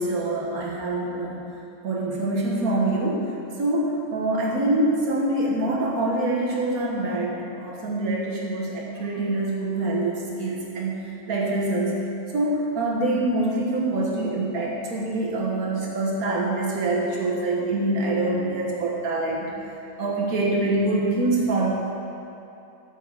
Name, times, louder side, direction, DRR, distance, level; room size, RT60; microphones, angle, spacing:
voice 1, 0.0-1.4 1.8-12.0 12.3-19.6 20.0-21.7, right 2 dB, 75° right, -3 dB, 1.8 m, -25 dB
7.0 x 6.3 x 7.1 m, 2.8 s
omnidirectional pair, 1.6 m